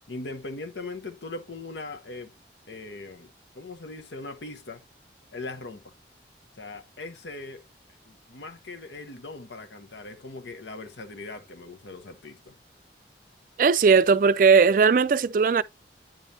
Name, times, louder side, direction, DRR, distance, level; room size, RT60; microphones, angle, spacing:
voice 1, 0.1-2.3 2.7-4.8 5.3-5.9 6.5-7.6 8.1-12.5, left 3 dB, 80° left, 1.0 m, -40 dB
voice 2, 13.6-15.6, right 5 dB, 50° right, 0.3 m, -18 dB
9.0 x 5.3 x 2.7 m
head